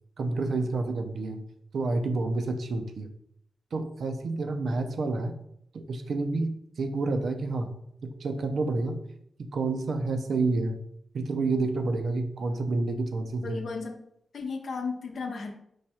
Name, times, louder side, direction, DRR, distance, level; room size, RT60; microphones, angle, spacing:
voice 1, 0.2-1.4 1.7-3.1 3.7-5.3 5.7-7.8 8.0-9.0 9.4-10.8 11.1-13.6, right 3 dB, 70° right, 6 dB, 0.5 m, -29 dB
voice 2, 13.4-13.9 14.3-15.5, left 4 dB, 65° left, 4 dB, 0.7 m, -34 dB
4.7 x 2.3 x 4.2 m, 0.73 s
cardioid pair, 65°, 0 cm